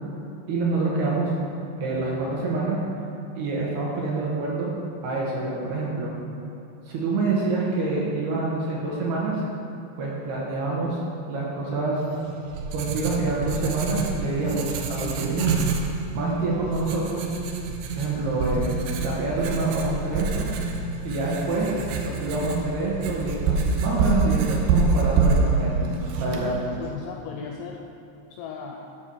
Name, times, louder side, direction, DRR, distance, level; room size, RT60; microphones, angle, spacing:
voice 1, 0.5-1.3 1.8-2.8 3.3-4.7 5.0-6.1 6.9-9.4 10.0-11.0 11.3-12.0 12.7-15.5 16.1-17.3 18.0-18.7 19.0-20.5 21.0-21.8 22.0-25.7 26.2-26.5, right 3 dB, 70° right, -5 dB, 2.8 m, -26 dB
Writing, 12.1-26.9, right 4 dB, 90° right, 2.2 m, -27 dB
voice 2, 26.4-27.8 28.3-28.9, left 6 dB, 85° left, 2 dB, 2.4 m, -37 dB
11.5 x 4.6 x 6.2 m, 2.8 s
omnidirectional pair, 5.5 m